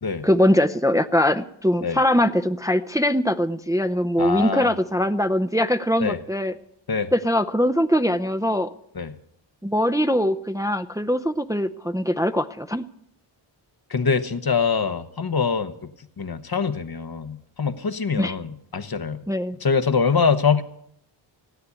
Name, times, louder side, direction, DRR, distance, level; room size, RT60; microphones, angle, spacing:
voice 1, 0.2-6.5 7.1-8.7 9.6-12.8 18.2-18.3 19.3-19.6, equal, 5° right, 8 dB, 0.6 m, -22 dB
voice 2, 4.2-4.7 6.0-6.2 6.9-7.1 8.9-9.2 13.9-15.9 16.2-19.2 19.6-20.6, left 5 dB, 50° left, 10 dB, 1.0 m, -24 dB
16.5 x 9.5 x 8.4 m, 0.74 s
wide cardioid pair, 70°, 49 cm